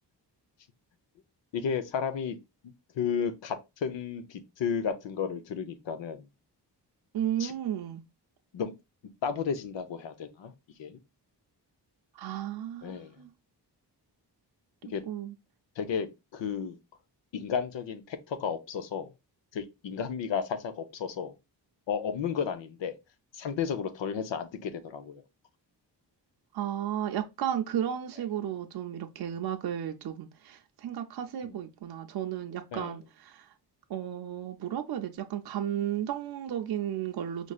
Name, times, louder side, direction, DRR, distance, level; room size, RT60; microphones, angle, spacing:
voice 1, 1.5-2.4 2.9-6.3 7.4-7.5 8.5-8.7 9.2-10.5 10.8-11.0 12.8-13.2 14.8-15.0 15.8-16.8 17.3-19.1 19.5-21.3 21.9-23.0 23.3-25.2 31.4-31.6 32.7-33.0, left 7 dB, 85° left, 0.8 m, -33 dB
voice 2, 7.1-8.0 12.1-13.3 15.1-15.3 26.5-33.5 33.9-37.5, right 10 dB, 60° right, 0.6 m, -34 dB
5.2 x 3.2 x 2.3 m
wide cardioid pair, 125°, 43 cm